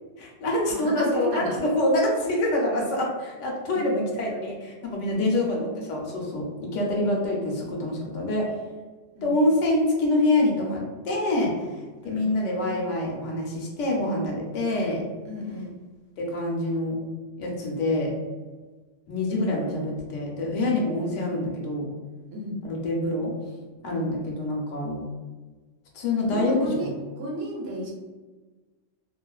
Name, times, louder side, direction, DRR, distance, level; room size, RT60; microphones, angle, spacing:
voice 1, 0.2-8.5 9.2-15.0 16.2-17.0 17.4-18.1 19.1-21.8 22.6-23.3 23.8-25.1 25.9-26.9, left 1 dB, 80° left, -2 dB, 1.0 m, -26 dB
voice 2, 0.7-1.6 3.7-4.0 5.0-5.3 9.1-9.3 12.0-12.3 15.2-15.8 22.3-22.6 23.8-24.1 26.2-26.9 27.2-27.9, right 1 dB, 60° right, -2 dB, 0.8 m, -33 dB
2.4 x 2.3 x 2.2 m, 1.3 s
omnidirectional pair, 1.3 m